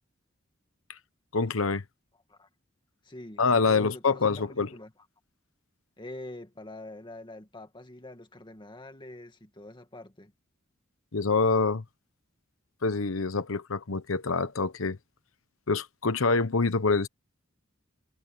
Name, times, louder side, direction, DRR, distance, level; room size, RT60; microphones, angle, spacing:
voice 1, 1.3-1.8 3.4-4.7 11.1-11.8 12.8-15.0 15.7-17.1, left 4 dB, 75° left, 1.0 m, -26 dB
voice 2, 3.0-4.9 6.0-10.3, left 1 dB, 25° left, 2.0 m, -45 dB
head